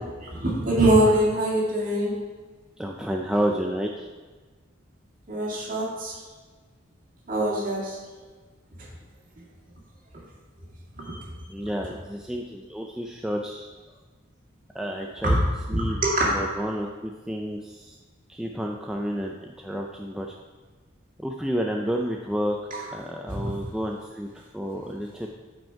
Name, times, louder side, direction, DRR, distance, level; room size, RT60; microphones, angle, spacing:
voice 1, 0.2-2.2 5.3-6.1 7.3-8.0 10.9-11.2 15.2-15.4 15.7-16.5 22.7-22.8 23.3-23.5, right 1 dB, 40° right, -4 dB, 2.1 m, -23 dB
voice 2, 2.8-4.1 11.5-13.7 14.7-15.4 15.7-16.0 16.3-18.0 18.3-20.4 21.2-22.6 22.9-25.3, equal, 5° right, 0 dB, 0.3 m, -30 dB
9.3 x 5.2 x 4.6 m, 1.4 s
head